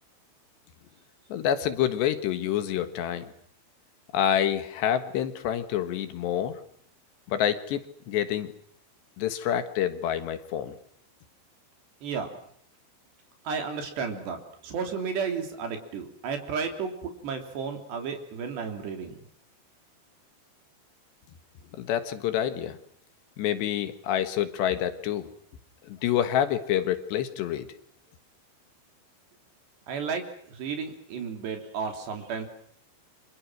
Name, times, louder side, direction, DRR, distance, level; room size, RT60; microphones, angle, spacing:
voice 1, 1.3-3.3 4.1-6.6 7.3-8.5 9.2-10.7 21.8-22.8 23.4-25.3 25.9-27.7, left 10 dB, 70° left, 10 dB, 3.5 m, -27 dB
voice 2, 13.5-19.2 29.9-30.2 30.5-32.5, right 5 dB, 65° right, 5 dB, 5.3 m, -33 dB
29.5 x 26.5 x 6.2 m, 0.64 s
omnidirectional pair, 5.5 m